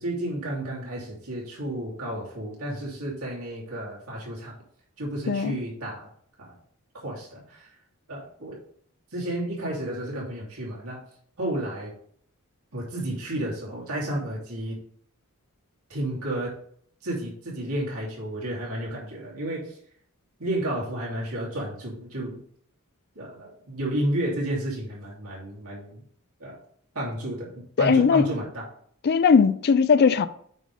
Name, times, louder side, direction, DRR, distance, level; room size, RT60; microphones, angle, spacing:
voice 1, 0.0-4.5 5.0-6.1 6.4-6.5 7.0-7.7 8.1-8.6 9.1-11.0 11.4-11.9 12.7-14.8 15.9-16.6 17.0-19.7 20.4-22.4 23.1-26.0 26.4-26.6 26.9-28.7, right 1 dB, 90° right, 2.9 m, -31 dB
voice 2, 5.3-5.6 27.8-28.2 29.0-30.3, left 6 dB, 50° left, 0.4 m, -19 dB
8.5 x 3.3 x 5.4 m
head